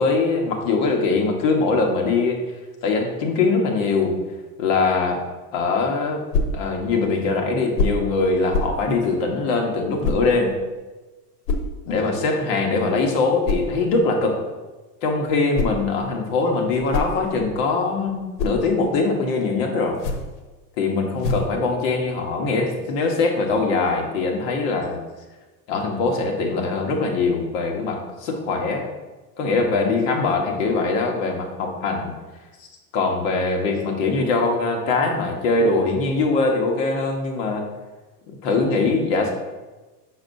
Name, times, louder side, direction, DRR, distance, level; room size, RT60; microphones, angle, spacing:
voice 1, 0.0-2.4 2.8-4.2 4.6-5.2 5.5-6.2 6.5-10.6 11.9-14.4 15.0-20.0 20.8-25.0 25.7-28.9 29.4-32.1 32.9-37.6 38.3-39.3, left 3 dB, 50° left, 2 dB, 1.2 m, -22 dB
sound 1, 6.3-6.6 7.7-8.1 8.5-8.8 10.0-10.3 11.5-11.7 13.4-13.7 15.3-15.9 16.6-17.6 18.1-18.6 19.9-20.4 21.2-21.6, left 2 dB, 85° left, 1.0 m, -25 dB
6.3 x 6.2 x 2.7 m, 1.2 s
supercardioid pair, 155°, 48 cm